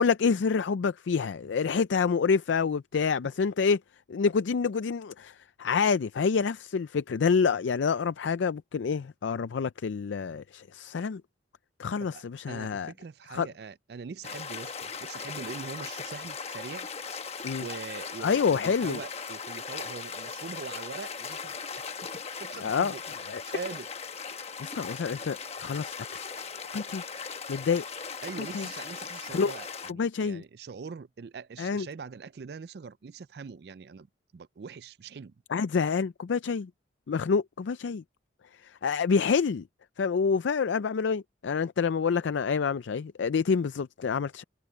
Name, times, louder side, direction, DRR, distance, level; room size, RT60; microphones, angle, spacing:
voice 1, 0.0-3.8 4.1-11.2 11.8-12.9 13.3-13.5 17.4-17.7 18.2-19.0 22.6-22.9 23.3-23.4 24.6-26.3 26.7-27.1 27.5-27.8 28.4-28.7 29.3-29.5 29.9-30.4 31.6-31.9 35.5-36.7 37.1-38.0 38.5-39.7 40.0-44.4, left 5 dB, 85° left, 0.4 m, -27 dB
voice 2, 12.0-16.9 17.6-23.0 23.4-23.9 28.2-34.1 34.3-35.3, right 5 dB, 60° right, 0.4 m, -42 dB
sound 1, 14.2-29.9, left 5 dB, 35° left, 1.1 m, -39 dB
head